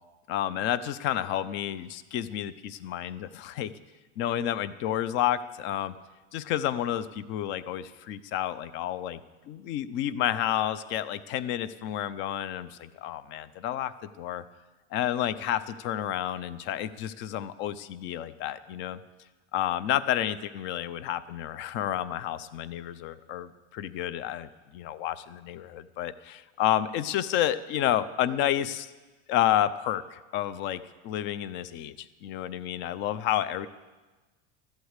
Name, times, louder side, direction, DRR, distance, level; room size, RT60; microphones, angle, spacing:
voice 1, 0.3-3.7 4.2-5.9 6.3-9.2 9.5-14.4 14.9-19.0 19.5-28.9 29.3-33.7, left 11 dB, 35° left, 16 dB, 0.5 m, -30 dB
13.0 x 8.1 x 8.1 m, 1.2 s
cardioid pair, 170°, 33 cm